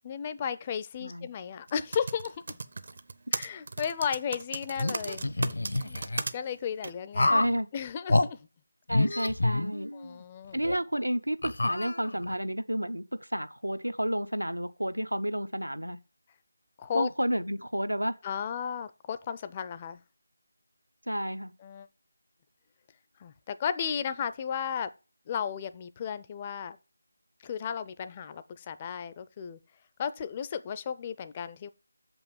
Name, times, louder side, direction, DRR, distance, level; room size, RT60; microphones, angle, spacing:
voice 1, 0.0-2.6 3.3-5.5 5.8-6.0 6.3-7.3 7.7-8.4 9.9-10.6 16.8-17.1 18.2-20.0 21.6-21.9 23.2-24.9 25.3-26.8 27.4-29.6 30.0-31.7, left 7 dB, 20° left, 0.4 m, -34 dB
Typing, 1.7-6.3 6.8-6.9, right 3 dB, 45° right, 0.6 m, -35 dB
sound 1, 4.8-6.2 7.1-7.6 8.1-8.3 8.9-10.1 10.6-10.7 11.4-12.3, left 2 dB, 60° left, 0.6 m, -28 dB
voice 2, 7.3-7.7 8.9-9.9 10.5-16.0 16.9-18.2 21.1-21.5, equal, 85° right, 0.8 m, -31 dB
6.9 x 5.4 x 7.1 m
figure-of-eight pair, 160°, 0 cm